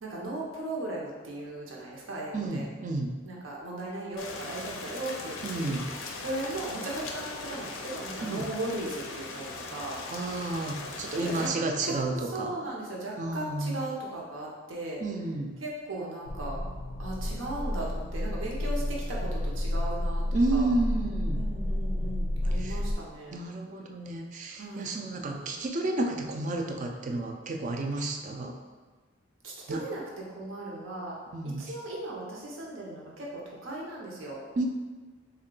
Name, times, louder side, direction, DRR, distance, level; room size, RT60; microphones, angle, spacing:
voice 1, 0.0-2.7 3.2-5.8 6.2-10.0 11.2-11.5 11.9-15.0 15.6-16.6 17.0-20.2 20.5-20.6 21.3-23.4 24.6-24.9 29.4-31.2 31.4-33.3 33.6-34.4, right 2 dB, 80° right, -3 dB, 0.8 m, -37 dB
voice 2, 2.3-3.2 5.4-5.9 8.2-8.5 10.1-12.5 13.2-13.9 15.0-15.6 20.3-21.4 22.5-22.8 23.3-28.5 29.7-29.9 31.3-31.7 34.6-34.7, right 2 dB, 40° right, 3 dB, 0.4 m, -31 dB
Rain, 4.2-11.5, left 3 dB, 90° left, 0.5 m, -39 dB
sound 1, 16.3-22.9, left 1 dB, 30° left, 0.4 m, -31 dB
3.6 x 2.3 x 3.8 m, 1.4 s
head